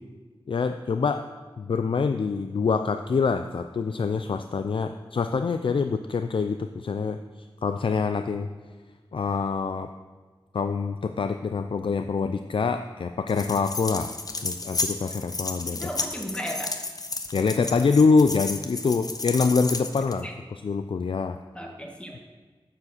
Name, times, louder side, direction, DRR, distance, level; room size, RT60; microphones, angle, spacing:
voice 1, 0.5-1.3 1.6-7.2 7.6-8.5 9.1-9.9 10.5-14.1 14.4-15.9 17.3-20.3 20.6-21.4, left 4 dB, 65° left, 9 dB, 0.4 m, -25 dB
sound 1, 13.3-20.2, left 3 dB, 40° left, 0.8 m, -32 dB
voice 2, 15.7-16.8 20.2-20.3 21.5-22.2, equal, 10° left, 1 dB, 1.7 m, -35 dB
9.6 x 7.5 x 6.5 m, 1.4 s
wide cardioid pair, 90°, 9 cm